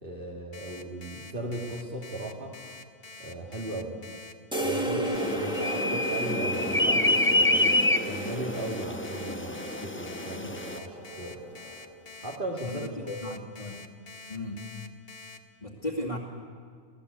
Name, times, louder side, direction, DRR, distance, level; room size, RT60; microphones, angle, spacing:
voice 1, 0.0-2.6 3.2-4.0 4.6-11.4 12.2-13.2, right 1 dB, 40° right, -3 dB, 2.5 m, -37 dB
Alarm, 0.5-15.4, left 3 dB, 45° left, 1.5 m, -46 dB
sound 1, 4.5-12.0, right 1 dB, 5° right, 2.3 m, -34 dB
sound 2, 5.1-10.8, left 1 dB, 15° left, 0.6 m, -27 dB
voice 2, 5.3-5.6 10.3-10.5 12.6-12.9 13.2-13.9 14.3-14.7 15.6-16.2, left 1 dB, 30° left, -4 dB, 2.4 m, -36 dB
26.0 x 18.5 x 8.3 m, 2.1 s
omnidirectional pair, 1.4 m